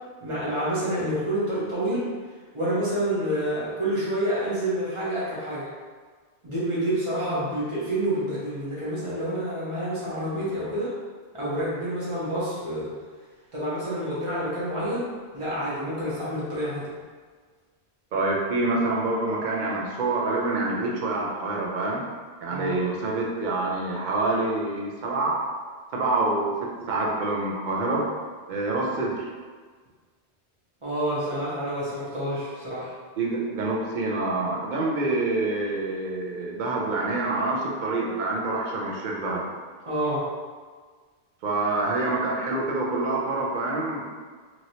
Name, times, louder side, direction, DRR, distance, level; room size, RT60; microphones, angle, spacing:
voice 1, 0.2-2.1 2.5-5.7 6.4-10.9 11.3-12.9 13.5-15.1 15.3-16.9 22.5-22.8 30.8-32.9 39.9-40.2, right 1 dB, 30° right, -9 dB, 0.9 m, -28 dB
voice 2, 18.1-22.0 22.4-25.4 25.9-28.1 28.5-29.3 33.2-39.4 41.4-44.0, right 2 dB, 50° right, -2 dB, 0.7 m, -26 dB
3.0 x 2.8 x 2.7 m, 1.5 s
omnidirectional pair, 1.1 m